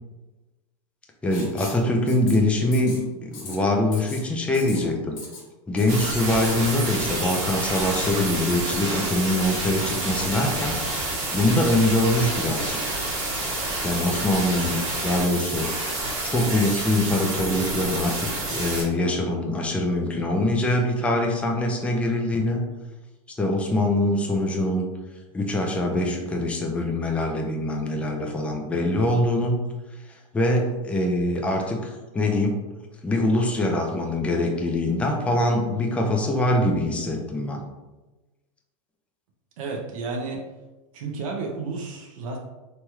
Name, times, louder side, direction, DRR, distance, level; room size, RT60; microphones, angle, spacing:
voice 1, 1.2-5.2 5.7-10.8 11.3-12.9 13.8-15.7 16.2-22.7 23.4-24.9 25.3-29.6 30.3-32.5 33.0-37.6, left 1 dB, 5° left, 1 dB, 0.4 m, -23 dB
Writing, 1.3-1.8 2.1-2.3 2.7-3.0 3.3-3.6 3.9-4.2 4.5-4.8 5.2-5.4 5.8-6.1 6.4-6.8 7.1-7.4 7.7-8.1, left 3 dB, 70° left, 1.3 m, -39 dB
sound 1, 5.9-18.8, right 2 dB, 45° right, 1.2 m, -28 dB
voice 2, 39.6-40.5 40.9-42.4, right 3 dB, 75° right, 0 dB, 0.7 m, -32 dB
3.1 x 2.9 x 2.3 m, 1.1 s
supercardioid pair, 140°, 17 cm